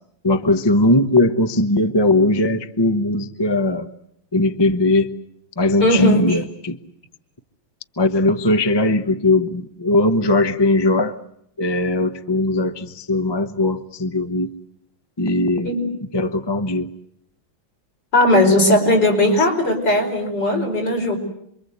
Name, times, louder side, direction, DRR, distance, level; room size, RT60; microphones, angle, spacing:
voice 1, 0.2-3.9 4.3-5.1 5.6-6.8 8.0-11.2 11.6-14.5 15.2-15.7 16.1-16.9, left 2 dB, 20° left, 0.6 m, -19 dB
voice 2, 5.8-6.4 15.6-15.9 18.1-21.2, left 1 dB, 55° left, 6.1 m, -17 dB
27.5 x 23.5 x 8.1 m
omnidirectional pair, 2.2 m